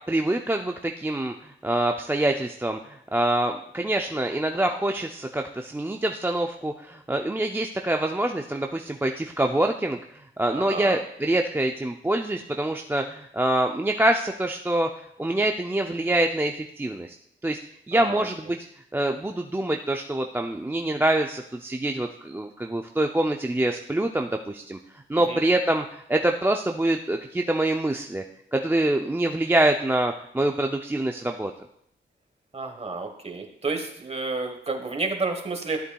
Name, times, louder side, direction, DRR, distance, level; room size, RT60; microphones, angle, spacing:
voice 1, 0.1-10.0 10.4-14.9 15.2-17.1 17.4-17.6 17.9-18.7 18.9-24.8 25.1-28.2 28.5-31.5, right 1 dB, 10° right, 3 dB, 0.4 m, -25 dB
voice 2, 10.5-11.0 17.9-18.3 25.3-25.4 32.5-35.8, right 3 dB, 30° right, 5 dB, 1.2 m, -30 dB
12.5 x 8.0 x 2.3 m, 0.72 s
wide cardioid pair, 115°, 20 cm